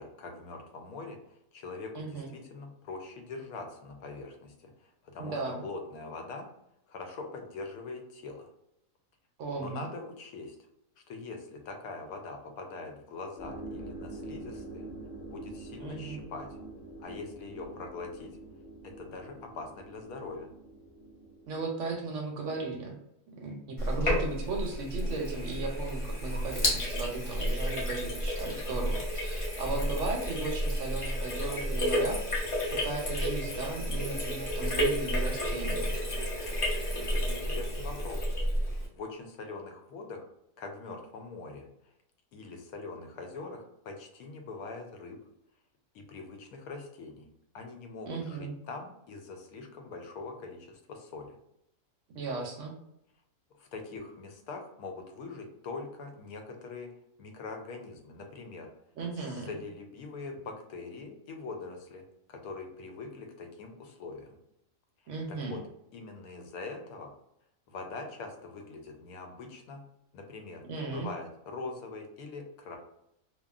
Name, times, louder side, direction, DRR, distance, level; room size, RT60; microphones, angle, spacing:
voice 1, 0.0-6.5 6.9-8.5 9.6-10.6 11.1-14.9 15.3-16.6 17.0-18.3 18.8-20.5 37.1-38.3 38.9-40.3 40.6-41.7 42.3-45.2 45.9-47.3 47.5-51.4 53.6-56.9 57.2-58.7 59.2-62.0 62.3-64.4 65.3-65.6 65.9-67.1 67.7-69.8 70.1-72.8, left 3 dB, 85° left, 4 dB, 1.0 m, -43 dB
voice 2, 1.9-2.3 5.2-5.6 9.4-9.9 15.8-16.2 21.5-23.0 23.4-32.5 32.8-35.9 48.1-48.5 52.1-52.7 59.0-59.5 65.1-65.6 70.6-71.1, right 3 dB, 70° right, 1 dB, 0.8 m, -36 dB
sound 1, 13.4-21.5, right 2 dB, 60° left, 1.2 m, -45 dB
Sink (filling or washing), 23.8-38.9, equal, 35° left, 0.5 m, -31 dB
2.9 x 2.2 x 2.3 m, 0.79 s
omnidirectional pair, 1.5 m